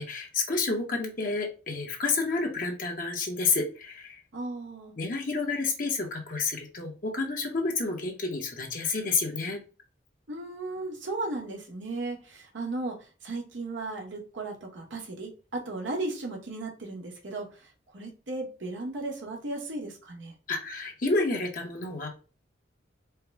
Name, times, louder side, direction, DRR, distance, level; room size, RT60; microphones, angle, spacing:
voice 1, 0.0-4.2 5.0-9.6 20.5-22.1, left 3 dB, 45° left, 1 dB, 0.9 m, -30 dB
voice 2, 4.3-4.9 10.3-20.3, right 2 dB, 75° right, 0 dB, 1.1 m, -36 dB
4.6 x 2.1 x 3.4 m, 0.35 s
head